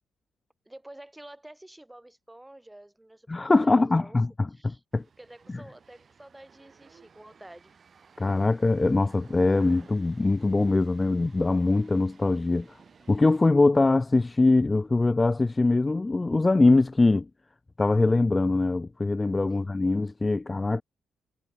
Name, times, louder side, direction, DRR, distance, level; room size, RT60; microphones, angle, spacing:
voice 1, 0.7-4.2 4.5-4.8 5.2-7.7 19.5-19.7, right 1 dB, 10° right, 4.3 m, -49 dB
voice 2, 3.3-5.0 5.5-5.6 8.2-12.7 13.1-17.3 17.8-20.8, left 3 dB, 20° left, 0.3 m, -23 dB
sound 1, 4.9-13.5, right 6 dB, 40° right, 4.2 m, -56 dB
cardioid pair, 90°, 0 cm